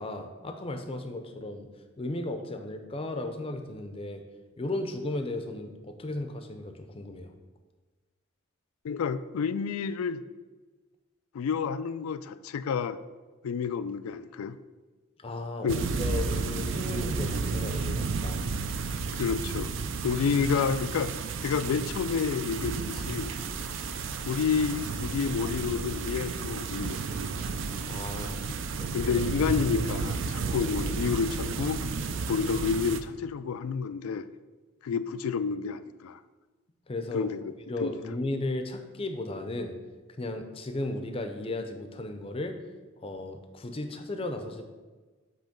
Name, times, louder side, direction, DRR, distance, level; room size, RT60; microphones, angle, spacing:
voice 1, 0.0-1.7 2.0-4.2 4.6-7.3 15.2-18.4 27.8-28.4 28.8-29.1 36.9-37.3 37.7-39.7 40.2-42.6 43.0-44.7, left 2 dB, 25° left, 6 dB, 0.5 m, -35 dB
voice 2, 8.8-10.2 11.3-13.0 13.4-14.6 15.6-15.8 19.1-19.7 20.0-21.1 21.4-23.3 24.3-27.3 28.9-31.8 32.3-34.3 34.8-36.2 37.1-37.5 37.8-37.9, left 6 dB, 90° left, 13 dB, 0.3 m, -29 dB
sound 1, 15.7-33.0, right 4 dB, 60° right, 0.4 m, -32 dB
7.8 x 3.0 x 5.1 m, 1.3 s
head